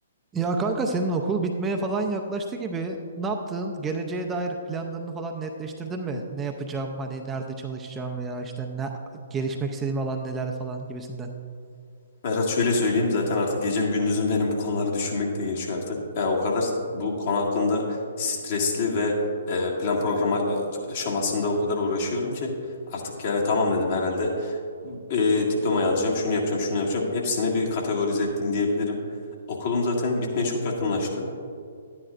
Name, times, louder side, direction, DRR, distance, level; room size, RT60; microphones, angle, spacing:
voice 1, 0.3-8.9 9.3-11.3, right 3 dB, 15° right, 2 dB, 0.6 m, -29 dB
voice 2, 12.2-22.5 22.9-29.0 29.5-31.3, left 3 dB, 50° left, -1 dB, 1.8 m, -25 dB
11.5 x 9.9 x 2.5 m, 2.4 s
figure-of-eight pair, 130°, 0 cm